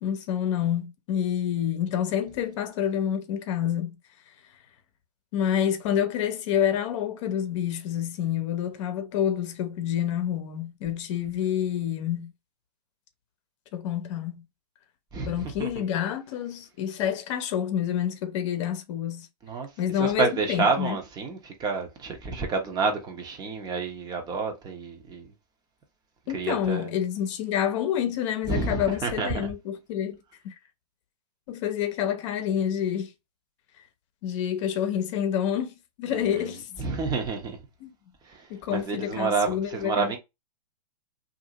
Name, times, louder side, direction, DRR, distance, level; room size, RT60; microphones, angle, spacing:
voice 1, 0.0-4.0 5.3-12.3 13.7-14.4 15.3-19.3 19.8-21.0 26.3-30.2 30.4-30.6 31.5-33.1 34.2-36.7 37.8-37.9 38.5-40.2, left 9 dB, 50° left, 0.8 m, -28 dB
voice 2, 15.1-15.8 19.4-19.7 20.0-25.3 26.3-26.9 28.5-29.5 36.1-36.5 36.8-37.6 38.2-40.2, right 4 dB, 20° right, 0.8 m, -29 dB
2.7 x 2.6 x 2.8 m
hypercardioid pair, 125°, 20 cm